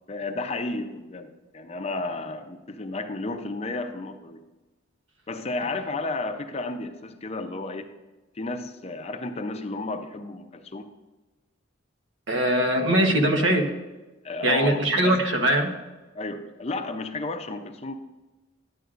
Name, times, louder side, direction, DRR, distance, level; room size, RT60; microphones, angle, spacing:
voice 1, 0.1-4.4 5.3-7.9 8.3-10.9 14.2-14.8 15.0-15.2 16.1-17.9, left 2 dB, 30° left, 7 dB, 0.5 m, -32 dB
voice 2, 12.3-13.7 14.4-15.7, right 1 dB, 70° right, 4 dB, 1.1 m, -21 dB
11.0 x 9.2 x 2.5 m, 1.2 s
head